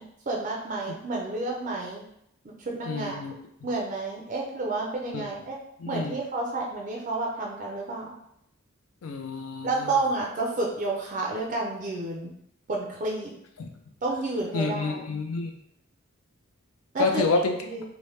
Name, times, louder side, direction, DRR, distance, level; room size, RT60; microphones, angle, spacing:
voice 1, 0.0-2.0 2.4-3.2 3.6-5.6 5.9-8.1 9.6-12.3 12.7-13.3 14.0-15.0 16.9-17.2 17.6-17.8, right 2 dB, 35° right, -1 dB, 0.4 m, -30 dB
voice 2, 2.9-3.3 3.6-3.7 5.1-5.3 5.8-6.2 9.0-10.0 13.6-13.7 14.5-15.5 17.0-17.6, left 3 dB, 80° left, 4 dB, 0.5 m, -28 dB
2.9 x 2.0 x 3.1 m, 0.74 s
head